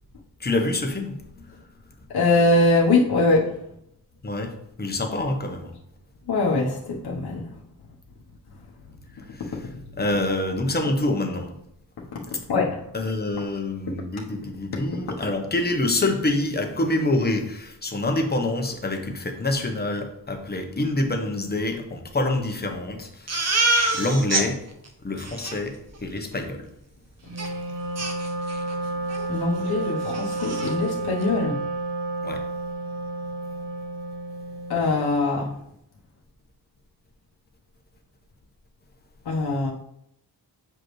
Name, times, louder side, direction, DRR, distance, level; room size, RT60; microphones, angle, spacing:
voice 1, 0.4-1.5 4.2-5.7 9.3-9.7 10.0-11.6 12.9-23.6 23.9-24.6 25.0-26.6 32.2-32.4, left 2 dB, 25° left, 4 dB, 1.0 m, -26 dB
voice 2, 2.1-3.5 6.3-7.5 12.1-12.2 12.5-12.8 29.3-31.6 34.7-35.5 39.2-39.7, left 2 dB, 70° left, -3 dB, 1.1 m, -22 dB
Crying sobbing, 23.3-24.5 24.9-25.0 25.2-25.6 27.4-27.5 28.0-28.7 29.1-29.3 29.6-29.7 30.0-30.7, right 2 dB, 40° right, 1.0 m, -25 dB
Wind instrument woodwind instrument, 27.2-35.1, right 2 dB, 80° right, 1.3 m, -31 dB
7.6 x 5.1 x 3.1 m, 0.75 s
wide cardioid pair, 135°, 40 cm